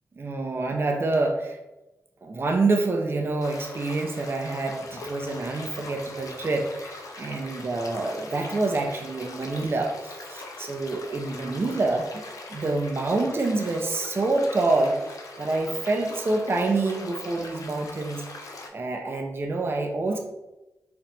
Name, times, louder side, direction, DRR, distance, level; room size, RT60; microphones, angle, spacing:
voice 1, 0.2-1.6 2.2-12.2 12.5-15.0 15.4-20.2, right 2 dB, 45° right, 3 dB, 0.6 m, -27 dB
sound 1, 3.4-18.7, left 2 dB, 80° left, 0.6 m, -41 dB
4.9 x 3.0 x 3.3 m, 0.98 s
cardioid pair, 70°, 6 cm